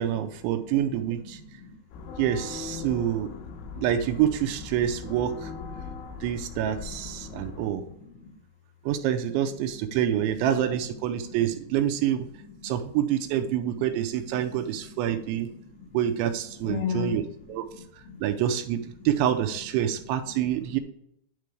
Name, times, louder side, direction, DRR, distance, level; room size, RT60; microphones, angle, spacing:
voice 1, 0.0-1.4 2.2-3.3 3.8-5.5 6.2-7.8 8.9-12.3 12.6-15.5 15.9-17.2 17.5-17.7 18.2-20.8, right 10 dB, 85° right, 8 dB, 2.9 m, -27 dB
voice 2, 1.4-1.8 3.4-3.9 7.2-7.4 7.8-8.3 12.6-12.7 14.9-15.0 15.5-16.0 16.6-17.3 18.1-18.2 20.3-20.4, left 7 dB, 60° left, -4 dB, 3.9 m, -36 dB
sound 1, 1.9-7.7, left 5 dB, 90° left, 3.9 m, -40 dB
10.5 x 3.8 x 4.8 m, 0.73 s
omnidirectional pair, 5.5 m